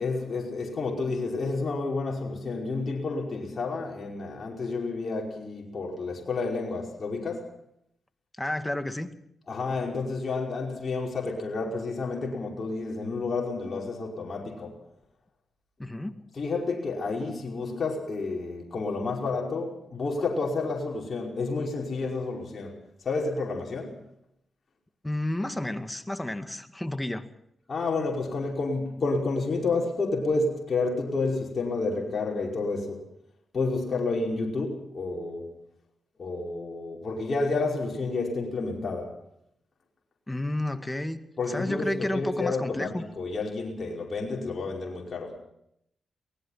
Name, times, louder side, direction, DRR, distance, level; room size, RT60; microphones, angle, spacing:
voice 1, 0.0-7.5 9.5-14.8 16.3-24.0 27.7-33.0 33.5-35.5 36.2-39.1 41.4-45.4, left 3 dB, 50° left, -1 dB, 5.2 m, -30 dB
voice 2, 8.4-9.1 15.8-16.2 25.0-27.3 40.3-41.2 41.5-43.0, left 1 dB, 15° left, 8 dB, 2.3 m, -31 dB
23.0 x 19.5 x 5.8 m, 0.76 s
supercardioid pair, 40°, 0 cm